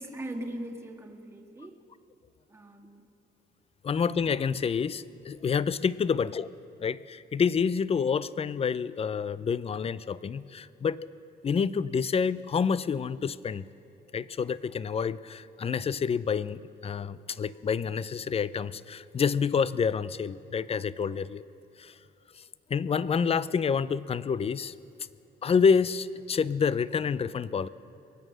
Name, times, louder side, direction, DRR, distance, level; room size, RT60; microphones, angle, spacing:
voice 1, 0.0-1.8 2.5-3.1 6.1-6.2, right 1 dB, 15° right, 1 dB, 1.7 m, -40 dB
voice 2, 3.8-6.5 6.8-11.0 11.4-13.6 14.1-21.4 21.8-21.9 22.7-24.7 25.4-27.7, left 6 dB, 30° left, 18 dB, 0.5 m, -28 dB
23.5 x 9.1 x 6.5 m, 2.8 s
cardioid pair, 90°, 20 cm